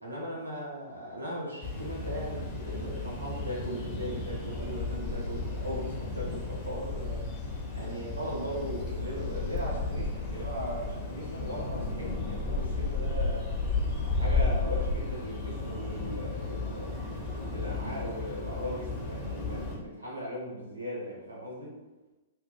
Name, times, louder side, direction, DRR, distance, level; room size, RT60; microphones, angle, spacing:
voice 1, 0.0-7.3 7.7-13.5 14.0-17.0 17.5-21.7, equal, 90° right, -5 dB, 0.8 m, -38 dB
sound 1, 1.6-19.7, left 3 dB, 25° left, 0.7 m, -33 dB
2.6 x 2.3 x 2.2 m, 1.1 s
figure-of-eight pair, 110°, 0 cm